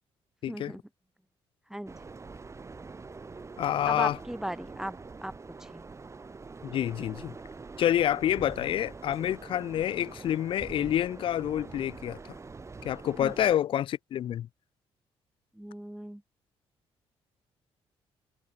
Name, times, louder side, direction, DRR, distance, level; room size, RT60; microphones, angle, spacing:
voice 1, 0.4-0.8 1.7-2.1 3.8-5.8 13.2-13.3 15.5-16.2, right 1 dB, 5° right, 1.5 m, -38 dB
sound 1, 1.9-13.6, right 4 dB, 30° right, 2.3 m, -45 dB
voice 2, 3.6-4.1 6.6-7.3 7.8-12.2 12.8-14.5, left 11 dB, 55° left, 0.4 m, -28 dB
cardioid pair, 80°, 10 cm